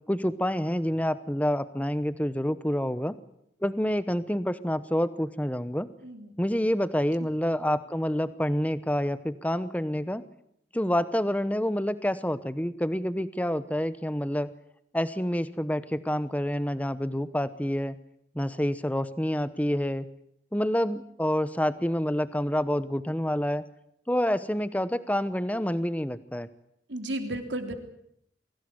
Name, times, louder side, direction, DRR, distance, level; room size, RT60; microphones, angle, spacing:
voice 1, 0.1-3.1 3.6-5.9 6.4-10.2 10.7-14.5 14.9-18.0 18.3-20.1 20.5-23.6 24.1-26.5, equal, 5° left, 14 dB, 0.9 m, -28 dB
voice 2, 26.9-27.7, right 1 dB, 65° right, 6 dB, 3.4 m, -33 dB
23.0 x 17.5 x 9.7 m, 0.75 s
head